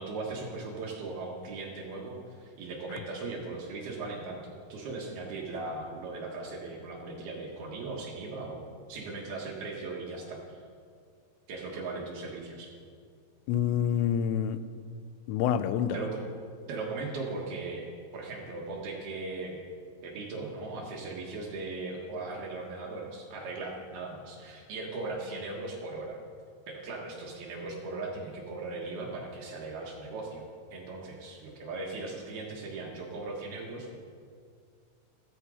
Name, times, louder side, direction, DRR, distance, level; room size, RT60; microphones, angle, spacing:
voice 1, 0.0-10.6 11.5-12.7 15.9-16.2 16.7-17.9 18.1-19.6 20.0-26.2 26.7-30.4 30.7-34.0, right 3 dB, 60° right, -2 dB, 3.0 m, -38 dB
voice 2, 13.5-14.6 15.3-16.0, left 9 dB, 85° left, 12 dB, 3.2 m, -27 dB
14.5 x 14.0 x 5.0 m, 2.2 s
omnidirectional pair, 5.8 m